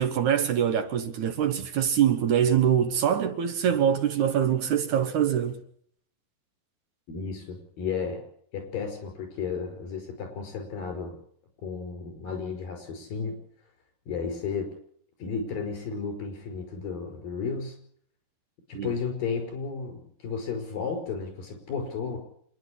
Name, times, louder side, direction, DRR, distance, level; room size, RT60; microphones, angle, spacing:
voice 1, 0.0-5.6 18.7-18.9, right 9 dB, 65° right, 2.4 m, -24 dB
voice 2, 7.1-8.2 8.5-11.2 11.6-13.4 14.1-14.7 15.2-17.8 18.7-22.2, left 5 dB, 70° left, 6.9 m, -33 dB
27.0 x 10.5 x 10.0 m
omnidirectional pair, 4.1 m